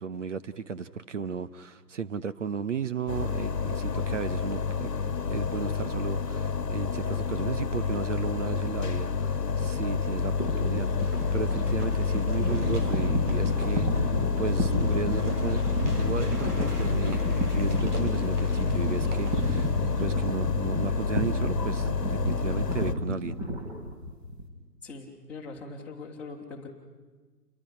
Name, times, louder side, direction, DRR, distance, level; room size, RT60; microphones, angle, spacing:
voice 1, 0.0-15.6 16.0-19.7 20.0-23.4, right 6 dB, 50° right, 12 dB, 0.9 m, -35 dB
sound 1, 3.1-22.9, left 5 dB, 80° left, 1.4 m, -28 dB
sound 2, 10.2-20.2, right 1 dB, 70° right, 4.9 m, -42 dB
sound 3, 10.4-24.5, equal, 20° right, 3.4 m, -31 dB
voice 2, 24.8-26.7, left 3 dB, 5° left, -6 dB, 2.0 m, -41 dB
29.5 x 22.5 x 5.8 m, 1.4 s
figure-of-eight pair, 150°, 49 cm